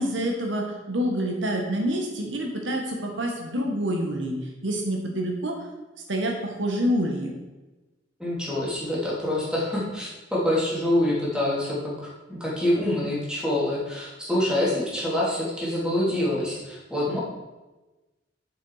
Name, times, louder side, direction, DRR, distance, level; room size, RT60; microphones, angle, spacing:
voice 1, 0.0-4.4 4.6-5.6 6.1-7.3, equal, 90° right, 2 dB, 1.7 m, -27 dB
voice 2, 8.2-17.2, left 1 dB, 5° right, -6 dB, 3.2 m, -26 dB
9.3 x 7.1 x 4.9 m, 1.1 s
head